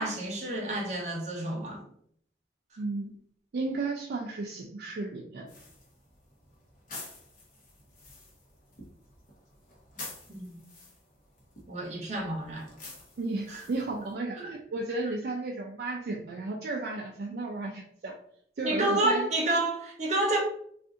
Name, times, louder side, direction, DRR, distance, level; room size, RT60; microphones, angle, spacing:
voice 1, 0.0-1.8 10.3-10.5 11.7-12.6 13.5-13.7 14.4-14.5 18.6-20.4, right 2 dB, 40° right, -1 dB, 0.9 m, -29 dB
voice 2, 2.8-3.2 3.5-5.5 13.2-18.1 18.6-19.3, right 3 dB, 60° right, 0 dB, 0.4 m, -34 dB
sound 1, 5.5-14.1, left 2 dB, 45° left, 1.0 m, -49 dB
2.5 x 2.5 x 3.6 m, 0.66 s
head